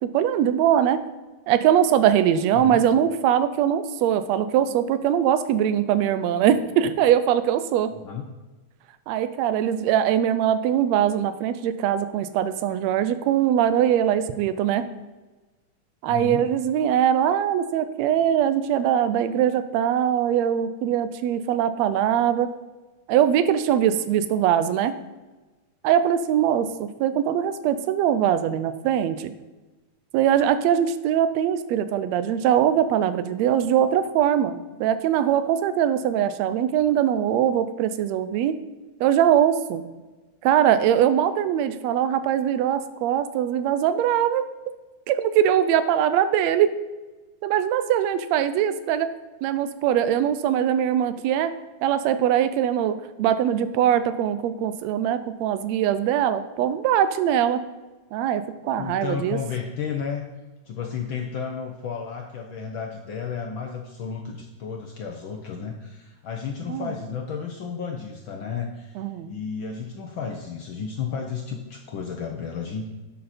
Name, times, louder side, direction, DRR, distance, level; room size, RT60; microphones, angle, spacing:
voice 1, 0.0-1.0 1.5-7.9 9.1-14.9 16.0-22.5 23.1-24.9 25.8-29.3 30.1-38.6 39.0-39.8 40.4-44.5 45.1-46.7 47.4-49.1 49.4-51.5 51.8-57.6 58.1-59.4 66.7-66.9 69.0-69.3, right 10 dB, 75° right, 12 dB, 1.8 m, -22 dB
voice 2, 2.5-2.8 7.9-8.2 16.1-16.4 58.8-60.2 60.6-72.9, left 6 dB, 75° left, 2 dB, 1.1 m, -32 dB
11.0 x 7.7 x 4.3 m, 1.2 s
omnidirectional pair, 3.3 m